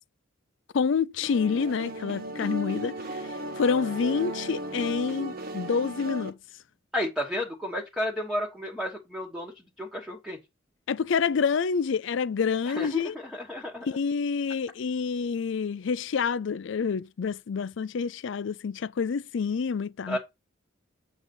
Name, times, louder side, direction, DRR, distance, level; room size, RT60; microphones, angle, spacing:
voice 1, 0.7-3.2 3.6-6.3 10.9-13.2 13.8-20.2, left 5 dB, 65° left, 0.4 m, -28 dB
sound 1, 1.2-6.3, right 1 dB, 50° right, 1.1 m, -35 dB
voice 2, 6.9-10.4 12.7-13.9 20.1-20.2, left 1 dB, ahead, 1.2 m, -32 dB
8.1 x 4.0 x 5.3 m
head